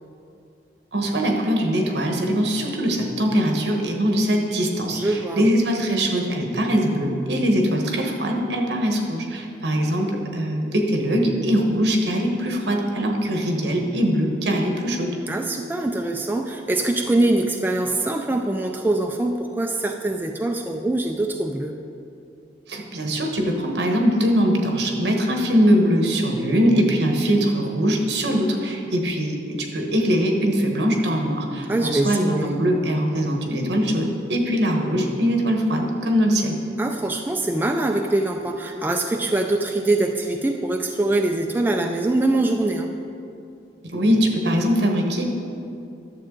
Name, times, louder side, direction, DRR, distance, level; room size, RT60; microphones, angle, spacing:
voice 1, 0.9-15.1 22.7-36.6 43.8-45.2, equal, 70° right, 2 dB, 1.1 m, -22 dB
voice 2, 4.8-5.5 15.3-21.8 31.7-32.5 36.8-42.9, right 2 dB, 10° right, 3 dB, 0.3 m, -23 dB
11.0 x 7.2 x 3.8 m, 2.6 s
head